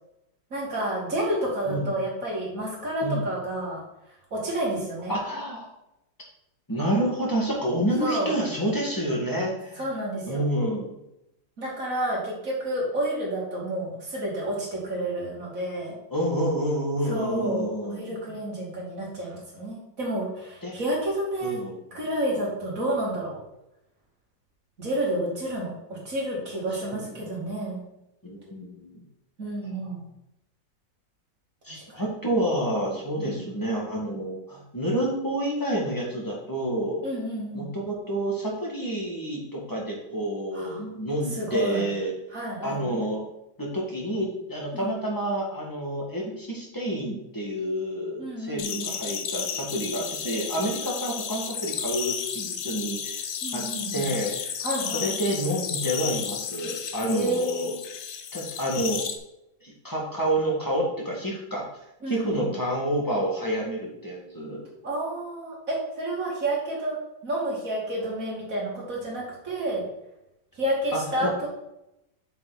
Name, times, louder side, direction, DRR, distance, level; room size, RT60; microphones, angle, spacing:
voice 1, 0.5-3.8 4.3-5.2 8.0-8.3 9.8-10.4 11.6-16.0 17.0-21.6 21.9-23.4 24.8-27.9 29.4-30.1 31.7-32.0 33.1-33.4 37.0-37.7 40.5-40.8 41.3-41.9 42.3-43.0 44.7-45.0 48.2-48.9 53.4-54.1 54.6-55.1 57.0-57.8 62.0-62.5 64.8-67.0 67.2-69.9 70.5-71.5, right 1 dB, 45° right, -4 dB, 2.9 m, -30 dB
voice 2, 5.1-5.7 6.7-9.8 10.3-10.9 16.1-18.3 20.6-20.7 21.4-21.8 26.9-27.1 28.2-29.0 31.6-37.0 37.5-42.1 42.6-43.2 43.6-53.2 53.5-53.6 53.9-54.6 54.9-57.7 58.3-59.0 59.6-61.6 62.1-64.6 70.9-71.5, right 1 dB, 10° left, -3 dB, 1.7 m, -28 dB
sound 1, 48.6-59.1, left 8 dB, 80° left, 1.5 m, -33 dB
7.1 x 6.0 x 4.0 m, 0.86 s
omnidirectional pair, 2.0 m